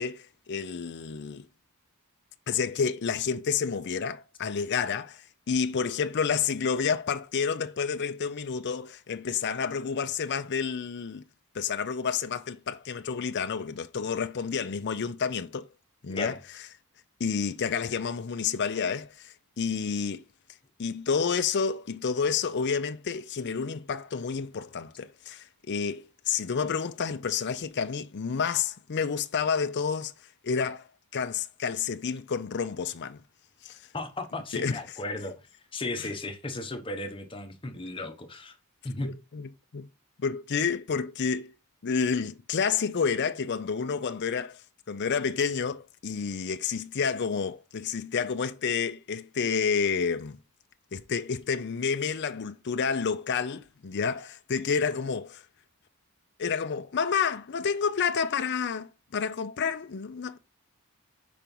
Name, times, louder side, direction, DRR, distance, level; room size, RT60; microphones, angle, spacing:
voice 1, 0.0-1.5 2.5-11.2 11.5-15.7 16.0-16.4 17.2-20.2 20.8-30.1 30.4-30.8 31.1-33.2 33.6-33.8 34.5-34.8 36.0-36.1 39.0-39.9 40.2-41.5 41.8-44.6 44.9-50.4 50.9-55.4 56.4-60.4, left 6 dB, 50° left, 0.5 m, -29 dB
voice 2, 33.9-35.4 35.7-38.6 38.8-39.2, left 2 dB, 25° left, 1.0 m, -35 dB
5.0 x 4.5 x 5.3 m
head